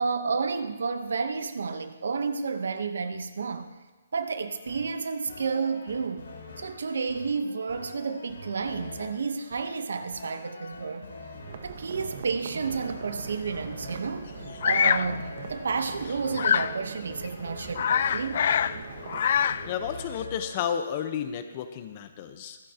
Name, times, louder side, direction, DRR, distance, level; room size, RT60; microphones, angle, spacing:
voice 1, 0.0-3.7 4.1-6.3 6.6-11.1 11.6-14.3 14.6-18.4, right 5 dB, 75° right, 9 dB, 1.1 m, -31 dB
sound 1, 4.4-20.5, left 2 dB, 80° left, 4.8 m, -45 dB
sound 2, 11.5-19.9, right 6 dB, 55° right, 1.4 m, -42 dB
Bird vocalization bird call bird song, 14.6-15.1 16.4-16.8 17.3-17.4 17.6-18.8 19.0-19.7, left 8 dB, 50° left, 0.3 m, -24 dB
voice 2, 19.7-22.6, left 8 dB, 35° left, 8 dB, 1.0 m, -32 dB
25.0 x 8.7 x 3.0 m, 1.2 s
hypercardioid pair, 160°, 0 cm